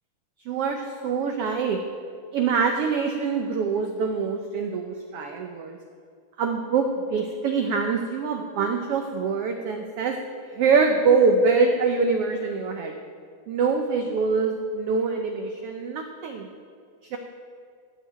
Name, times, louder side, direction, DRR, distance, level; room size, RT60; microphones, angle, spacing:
voice 1, 0.4-1.8 2.3-5.8 6.4-10.2 10.5-12.9 13.5-16.5 17.1-17.2, right 4 dB, 85° right, 5 dB, 1.3 m, -24 dB
15.0 x 5.1 x 9.0 m, 2.2 s
omnidirectional pair, 3.6 m